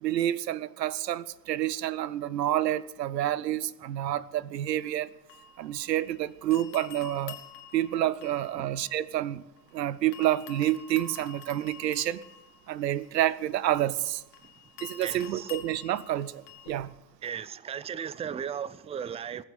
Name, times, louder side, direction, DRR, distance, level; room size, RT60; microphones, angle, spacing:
voice 1, 0.0-5.1 5.6-7.4 7.7-9.4 9.7-12.2 12.7-14.2 14.8-16.9, right 13 dB, 90° right, 0.6 m, -29 dB
sound 1, 4.7-6.2 6.5-9.7 10.1-16.9, left 7 dB, 75° left, 1.9 m, -49 dB
voice 2, 15.0-15.5 17.2-19.4, right 8 dB, 15° right, 0.4 m, -36 dB
20.0 x 7.3 x 9.1 m
hypercardioid pair, 65°, 48 cm